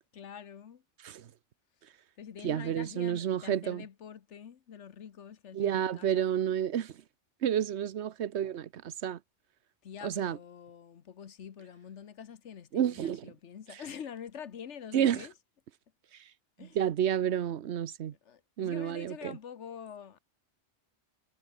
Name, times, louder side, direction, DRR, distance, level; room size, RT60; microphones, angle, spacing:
voice 1, 0.1-0.8 2.2-6.3 9.8-15.3 16.6-16.8 18.2-20.2, left 8 dB, 80° left, 1.4 m, -46 dB
voice 2, 2.4-3.8 5.5-6.9 7.4-9.2 10.0-10.4 12.7-13.3 14.9-15.2 16.8-18.1 18.6-19.4, right 9 dB, 70° right, 1.1 m, -30 dB
omnidirectional pair, 1.2 m